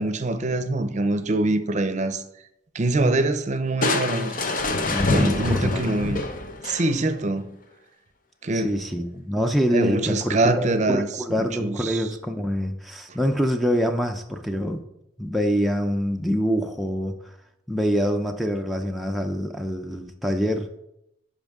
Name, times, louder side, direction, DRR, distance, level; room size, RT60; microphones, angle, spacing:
voice 1, 0.0-2.2 2.7-4.3 5.1-6.2 6.6-7.5 8.4-8.7 9.7-11.1 11.3-12.0, right 2 dB, 40° right, 0.6 m, -24 dB
Crushing, 3.8-7.2, left 2 dB, 50° left, 0.7 m, -26 dB
voice 2, 4.8-5.9 8.5-14.8 15.2-17.1 17.7-20.7, equal, ahead, 0.4 m, -25 dB
10.5 x 5.1 x 3.6 m
head